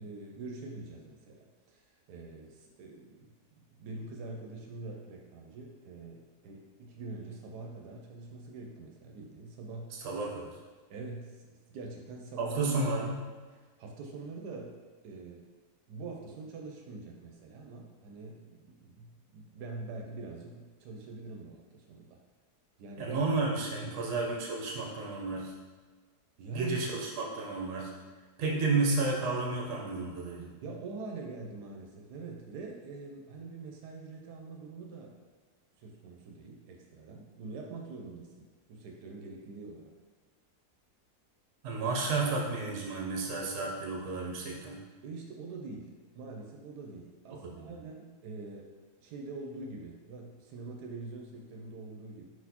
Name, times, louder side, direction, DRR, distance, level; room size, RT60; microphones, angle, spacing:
voice 1, 0.0-10.0 10.9-12.8 13.6-15.5 15.9-22.2 22.8-23.2 23.7-23.9 26.4-26.8 28.5-28.8 30.6-35.2 35.8-39.9 45.0-48.7 49.0-52.2, right 3 dB, 85° right, 1 dB, 1.2 m, -44 dB
voice 2, 10.0-10.6 12.4-13.2 23.0-25.5 26.5-27.9 28.4-30.5 41.6-44.8 47.5-47.8, right 3 dB, 60° right, -2 dB, 1.1 m, -32 dB
4.5 x 4.1 x 2.8 m, 1.4 s
omnidirectional pair, 1.7 m